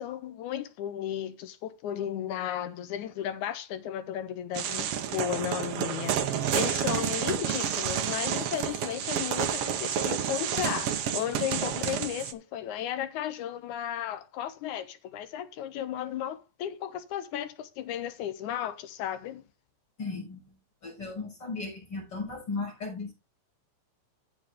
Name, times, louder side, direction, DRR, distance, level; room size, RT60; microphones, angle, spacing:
voice 1, 0.0-19.4, left 10 dB, 75° left, 2.0 m, -34 dB
sound 1, 4.5-12.3, right 9 dB, 70° right, 1.4 m, -30 dB
voice 2, 20.0-20.4 20.8-23.1, left 3 dB, 30° left, 6.4 m, -36 dB
15.5 x 5.4 x 3.5 m
omnidirectional pair, 3.9 m